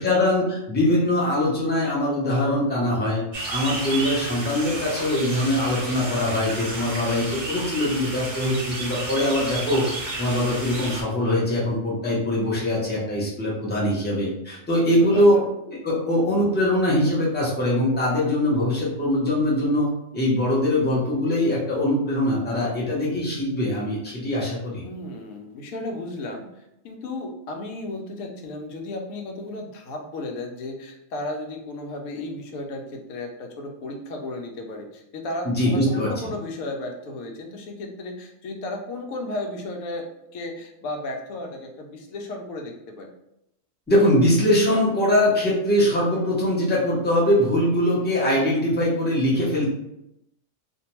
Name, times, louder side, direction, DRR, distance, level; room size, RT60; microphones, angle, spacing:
voice 1, 0.0-3.2 3.5-9.9 10.2-15.4 15.7-19.9 20.1-24.9 35.4-36.1 43.9-49.7, left 1 dB, 10° left, -5 dB, 0.5 m, -22 dB
sound 1, 3.3-11.0, right 2 dB, 50° right, 0.4 m, -32 dB
voice 2, 14.8-15.4 24.8-40.1 40.3-43.1, left 2 dB, 85° left, 2 dB, 1.0 m, -34 dB
2.5 x 2.2 x 2.9 m, 0.83 s
omnidirectional pair, 1.4 m